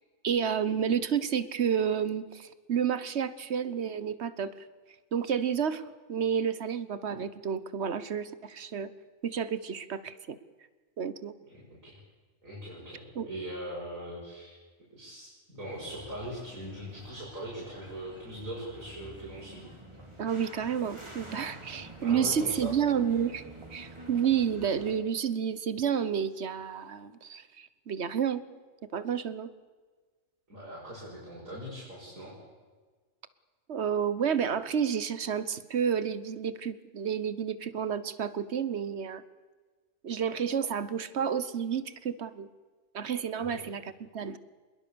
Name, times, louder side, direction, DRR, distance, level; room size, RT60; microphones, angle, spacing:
voice 1, 0.2-4.5 5.1-8.9 9.2-10.4 11.0-11.3 13.1-13.3 20.2-23.4 23.7-28.4 28.9-29.5 33.7-39.2 40.0-42.5 42.9-44.4, right 7 dB, 55° right, 14 dB, 1.3 m, -30 dB
voice 2, 12.4-14.6 15.0-19.6 22.0-22.7 30.5-32.4 43.5-43.6, right 1 dB, 90° right, -7 dB, 7.2 m, -41 dB
sound 1, 15.6-25.0, right 1 dB, 20° right, 3.4 m, -48 dB
25.5 x 21.5 x 7.0 m, 1.4 s
omnidirectional pair, 1.4 m